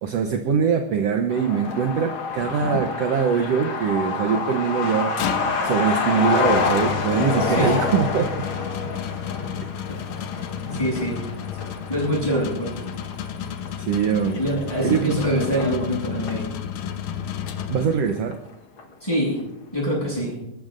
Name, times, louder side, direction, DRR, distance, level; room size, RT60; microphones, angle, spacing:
voice 1, 0.0-5.2 5.6-8.4 13.8-14.4 14.8-15.3 17.7-18.4, right 6 dB, 65° right, 4 dB, 1.9 m, -23 dB
Truck, 1.3-16.5 16.8-16.9 17.2-18.0 18.3-18.4 18.8-19.1, left 4 dB, 50° left, 1.9 m, -28 dB
sound 1, 5.0-18.3, left 9 dB, 90° left, 2.4 m, -32 dB
voice 2, 7.4-7.7 9.9-10.0 10.7-11.2 11.9-12.8 14.3-16.5 19.0-19.4 19.7-20.4, equal, 5° left, -3 dB, 7.0 m, -25 dB
29.5 x 14.0 x 2.6 m, 0.84 s
omnidirectional pair, 3.4 m